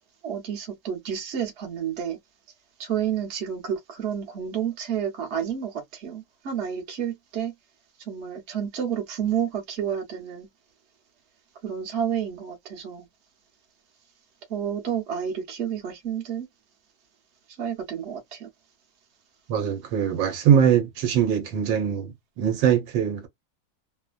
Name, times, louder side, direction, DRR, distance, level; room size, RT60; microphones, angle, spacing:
voice 1, 0.2-2.2 2.8-7.5 8.0-10.5 11.6-13.1 14.5-16.5 17.6-18.5, right 8 dB, 45° right, 1.0 m, -30 dB
voice 2, 19.5-23.3, right 8 dB, 75° right, 1.5 m, -22 dB
3.2 x 2.1 x 2.4 m
omnidirectional pair, 2.1 m